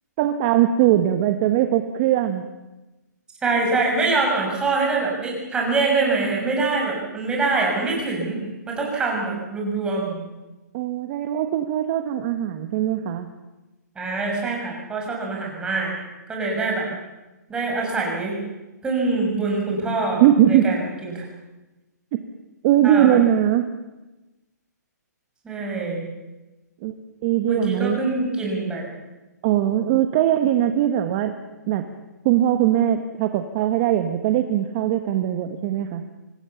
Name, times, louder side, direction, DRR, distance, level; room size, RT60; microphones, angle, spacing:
voice 1, 0.2-2.5 10.7-13.3 20.2-20.8 22.1-22.2 22.6-23.7 26.8-26.9 27.2-28.0 29.4-31.3 31.7-31.8 32.2-36.1, right 11 dB, 30° right, 8 dB, 1.4 m, -20 dB
voice 2, 3.4-8.4 8.7-10.3 14.0-15.9 16.3-16.9 17.5-18.4 18.8-21.2 22.8-23.2 25.4-26.1 27.4-28.9, right 3 dB, 10° right, -1 dB, 6.2 m, -24 dB
25.0 x 19.0 x 7.1 m, 1.1 s
hypercardioid pair, 155°, 10 cm